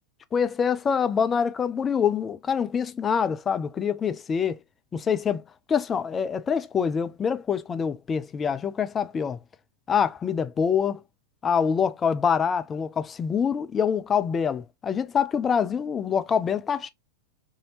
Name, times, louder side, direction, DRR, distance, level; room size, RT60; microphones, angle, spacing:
voice 1, 0.3-4.6 4.9-5.4 5.7-9.4 9.9-11.0 11.4-16.9, left 7 dB, 20° left, 0.3 m, -25 dB
2.7 x 2.7 x 3.0 m
figure-of-eight pair, 90°, 0 cm